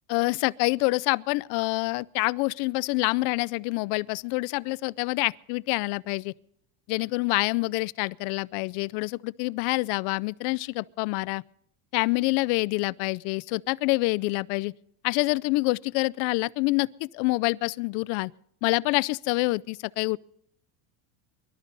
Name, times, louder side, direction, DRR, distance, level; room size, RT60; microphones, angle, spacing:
voice 1, 0.1-6.3 6.9-11.4 11.9-14.7 15.0-16.9 17.1-18.3 18.6-20.2, left 24 dB, 60° left, 0.6 m, -26 dB
23.5 x 12.5 x 3.9 m
supercardioid pair, 140°, 46 cm